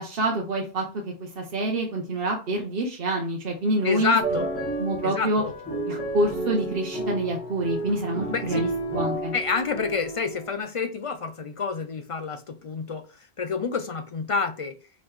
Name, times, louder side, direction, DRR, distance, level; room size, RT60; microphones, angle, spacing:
voice 1, 0.0-4.2 4.8-5.4 5.9-9.3, right 1 dB, 65° right, 0 dB, 1.0 m, -27 dB
voice 2, 3.8-4.5 5.0-5.5 8.3-8.7 9.3-13.0 13.4-14.8, left 5 dB, 50° left, 8 dB, 0.4 m, -28 dB
sound 1, 4.2-10.6, right 2 dB, 15° left, 1.6 m, -31 dB
4.9 x 3.0 x 3.6 m, 0.34 s
omnidirectional pair, 1.0 m